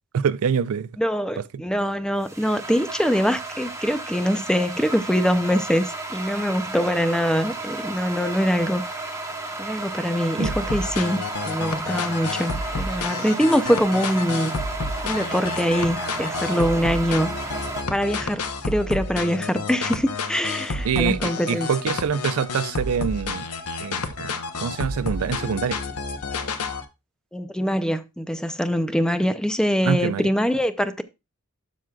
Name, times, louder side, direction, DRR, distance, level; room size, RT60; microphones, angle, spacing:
voice 1, 0.1-0.9 1.5-1.6 10.4-10.5 20.8-23.5 23.8-25.8 29.8-30.2, right 6 dB, 65° right, 0.4 m, -25 dB
voice 2, 1.0-8.8 9.6-11.2 11.4-14.6 15.0-17.3 17.9-21.7 27.3-31.0, equal, 5° left, 0.5 m, -23 dB
sound 1, 1.7-17.8, right 2 dB, 15° right, 1.1 m, -33 dB
sound 2, 10.4-26.8, left 3 dB, 85° left, 1.0 m, -30 dB
12.0 x 6.0 x 2.3 m
head